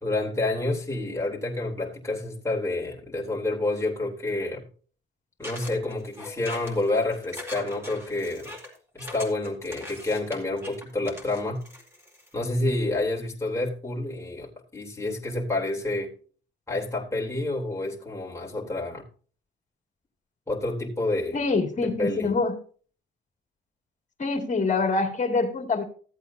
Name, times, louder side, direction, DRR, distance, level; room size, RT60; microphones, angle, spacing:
voice 1, 0.0-4.6 5.4-8.5 8.9-11.6 12.3-16.1 16.7-19.0 20.5-21.4 21.8-22.3, left 2 dB, 15° left, 3.4 m, -29 dB
sound 1, 5.4-12.3, left 1 dB, 10° right, 4.0 m, -42 dB
voice 2, 21.3-22.6 24.2-25.8, left 3 dB, 40° left, 2.6 m, -25 dB
15.5 x 8.2 x 2.8 m
cardioid pair, 90°, 20 cm